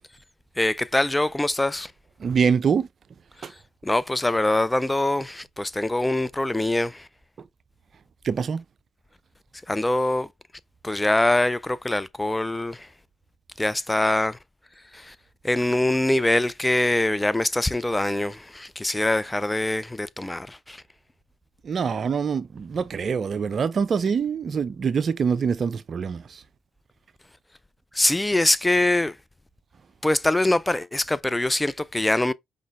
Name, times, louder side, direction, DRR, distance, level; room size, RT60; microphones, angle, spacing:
voice 1, 0.6-1.9 3.4-7.1 9.7-10.3 10.8-12.9 13.6-14.4 14.9-15.2 15.4-20.8 27.9-29.2 30.0-32.3, left 1 dB, 15° left, 0.4 m, -23 dB
voice 2, 2.2-2.9 3.4-3.5 8.2-8.6 21.6-26.4, right 6 dB, 50° right, 0.4 m, -24 dB
5.0 x 3.7 x 2.4 m
hypercardioid pair, 45°, 0 cm